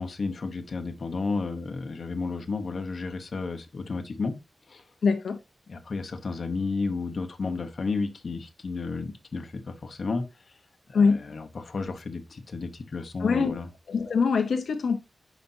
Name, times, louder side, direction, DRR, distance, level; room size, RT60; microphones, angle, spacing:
voice 1, 0.0-4.4 4.7-4.8 5.7-10.2 10.9-13.7, left 4 dB, 45° left, 1.0 m, -32 dB
voice 2, 5.0-5.4 10.9-11.2 13.2-13.6 13.9-15.0, left 5 dB, 75° left, 0.8 m, -23 dB
9.6 x 5.1 x 2.7 m
wide cardioid pair, 180°, 0 cm